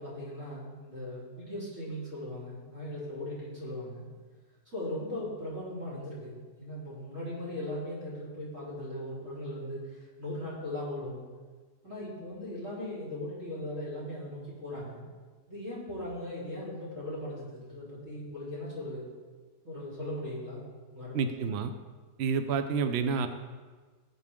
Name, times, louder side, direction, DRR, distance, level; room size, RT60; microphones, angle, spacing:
voice 1, 0.0-4.1 4.7-11.2 11.8-15.0 15.5-19.1 19.6-20.6 20.9-21.6, left 1 dB, 40° right, -7 dB, 4.5 m, -38 dB
voice 2, 21.1-21.7 22.2-23.3, right 5 dB, 75° right, 8 dB, 0.6 m, -29 dB
17.5 x 8.0 x 3.7 m, 1.4 s
omnidirectional pair, 2.0 m